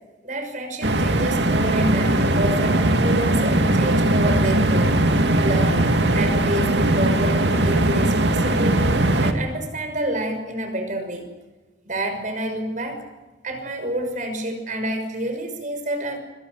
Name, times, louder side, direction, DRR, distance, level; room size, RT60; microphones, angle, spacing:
voice 1, 0.2-5.0 5.4-5.9 6.1-8.9 9.2-11.3 11.9-13.0 13.4-16.2, right 1 dB, 45° right, 6 dB, 6.0 m, -28 dB
sound 1, 0.8-9.3, right 1 dB, 75° right, 2.5 m, -19 dB
26.0 x 25.5 x 6.6 m, 1.2 s
head